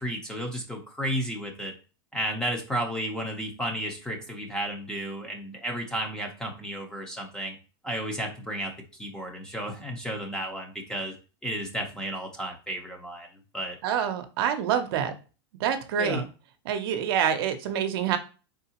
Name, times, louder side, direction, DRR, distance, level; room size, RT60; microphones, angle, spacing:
voice 1, 0.0-1.7 2.1-7.6 7.8-8.7 9.0-11.1 11.4-13.3 13.5-13.8 16.0-16.3, equal, 5° left, 2 dB, 0.7 m, -32 dB
voice 2, 13.8-15.1 15.6-16.2 16.7-18.2, right 8 dB, 60° right, 7 dB, 0.7 m, -26 dB
4.6 x 3.7 x 2.9 m, 0.34 s
supercardioid pair, 165°, 14 cm